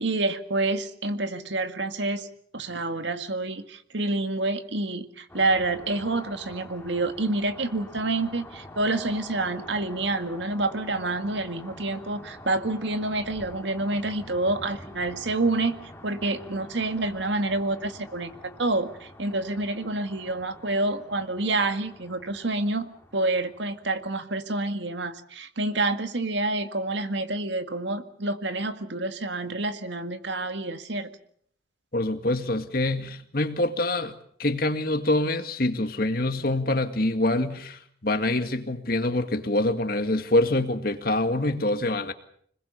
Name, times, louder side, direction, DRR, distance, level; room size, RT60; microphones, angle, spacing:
voice 1, 0.0-2.3 2.5-31.1, right 2 dB, 75° right, 1.9 m, -28 dB
sound 1, 5.3-24.1, left 1 dB, 10° left, 2.2 m, -46 dB
voice 2, 31.9-34.1 34.4-42.1, left 1 dB, 50° left, 2.0 m, -25 dB
26.0 x 21.0 x 7.0 m
head